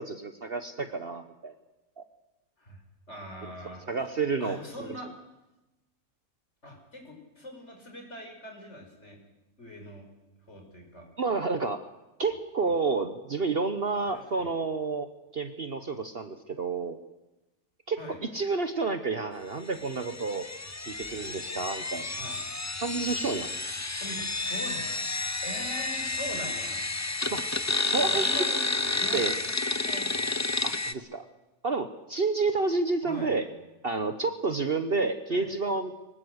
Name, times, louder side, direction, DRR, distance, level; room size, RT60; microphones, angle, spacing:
voice 1, 0.0-1.5 2.0-2.1 3.4-3.5 3.9-4.6 11.2-11.8 12.2-15.1 15.3-17.0 17.9-20.5 20.8-22.4 22.8-23.5 27.3-27.5 27.9-28.4 29.1-29.3 30.6-31.3 31.6-33.4 33.8-35.9, right 4 dB, 45° right, 9 dB, 1.2 m, -30 dB
voice 2, 3.1-3.8 4.4-5.1 6.6-9.2 9.6-10.1 10.5-11.1 14.1-14.5 18.0-18.2 22.2-22.4 24.0-25.0 25.4-27.3 28.0-28.7 28.9-29.2 29.7-30.4 33.0-33.3 35.3-35.5, equal, 50° left, 2 dB, 5.6 m, -42 dB
sound 1, 19.7-30.9, left 3 dB, 25° left, 0.4 m, -31 dB
23.5 x 19.0 x 8.1 m, 1.0 s
omnidirectional pair, 1.5 m